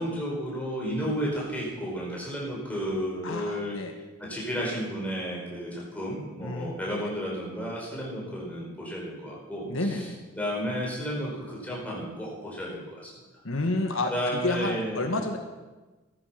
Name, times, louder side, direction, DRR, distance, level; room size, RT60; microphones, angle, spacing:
voice 1, 0.0-3.8 4.2-10.1 10.3-13.1 14.1-15.2, equal, 5° left, -5 dB, 5.1 m, -32 dB
voice 2, 3.2-3.9 6.4-7.1 9.7-10.2 13.4-15.4, left 2 dB, 75° left, 5 dB, 1.4 m, -30 dB
15.0 x 13.5 x 5.8 m, 1.2 s
head